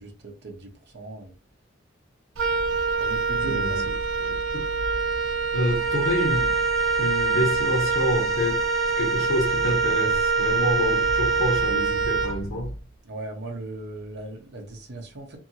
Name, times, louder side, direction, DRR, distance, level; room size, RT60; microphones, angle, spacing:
voice 1, 0.0-1.3 3.0-4.0 13.0-15.4, right 2 dB, 55° right, 0.7 m, -37 dB
Wind instrument woodwind instrument, 2.4-12.8, right 4 dB, 90° right, 0.6 m, -25 dB
voice 2, 3.4-3.8 4.2-4.3 5.5-6.6 7.0-8.6 9.0-12.7, left 1 dB, 80° left, 0.8 m, -27 dB
sound 1, 5.6-11.7, left 3 dB, ahead, 0.6 m, -36 dB
2.7 x 2.6 x 2.7 m
head